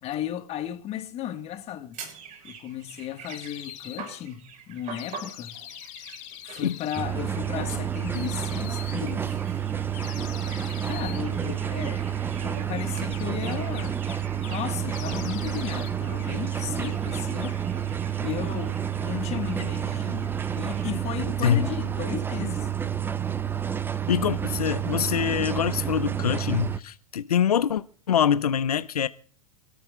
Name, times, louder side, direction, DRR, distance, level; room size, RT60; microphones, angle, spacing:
voice 1, 0.0-2.0 2.4-5.5 6.4-9.4 10.6-14.0 14.5-17.6 18.2-22.7, left 11 dB, 35° left, 1.6 m, -35 dB
sound 1, 1.9-21.0, right 6 dB, 40° right, 7.5 m, -46 dB
sound 2, 3.3-4.0 4.9-7.0 8.0-9.0 9.9-11.3 12.7-14.6 14.9-15.9 16.2-17.7, left 15 dB, 55° left, 1.7 m, -43 dB
sound 3, 7.0-26.8, right 9 dB, 10° right, 0.7 m, -29 dB
voice 2, 24.1-29.1, left 9 dB, 85° left, 0.6 m, -24 dB
27.5 x 13.5 x 2.4 m
hypercardioid pair, 105°, 19 cm